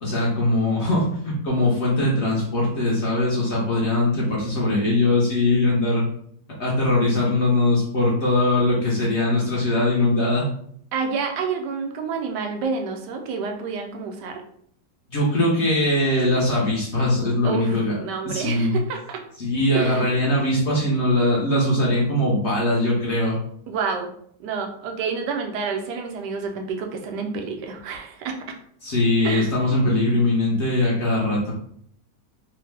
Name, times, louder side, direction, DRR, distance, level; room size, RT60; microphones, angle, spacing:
voice 1, 0.0-6.0 6.6-10.5 15.1-17.9 18.2-18.8 19.4-23.3 28.8-31.5, left 1 dB, 55° left, -4 dB, 0.8 m, -21 dB
voice 2, 10.9-14.4 17.4-19.2 19.7-20.1 23.7-24.1 24.4-28.4 29.2-29.5, right 5 dB, 85° right, 3 dB, 1.2 m, -29 dB
3.1 x 2.0 x 3.3 m, 0.65 s
omnidirectional pair, 1.8 m